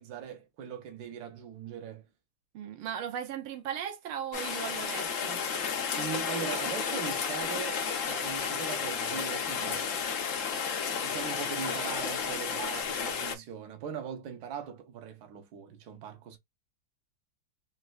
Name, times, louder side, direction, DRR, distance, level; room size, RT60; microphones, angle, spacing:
voice 1, 0.0-2.0 6.0-10.2 11.0-16.4, right 7 dB, 60° right, 1.2 m, -40 dB
voice 2, 2.5-5.4 9.6-10.0, right 9 dB, 85° right, 1.5 m, -38 dB
Rain, 4.3-13.4, left 6 dB, 75° left, 0.7 m, -32 dB
4.1 x 2.4 x 2.3 m
omnidirectional pair, 2.2 m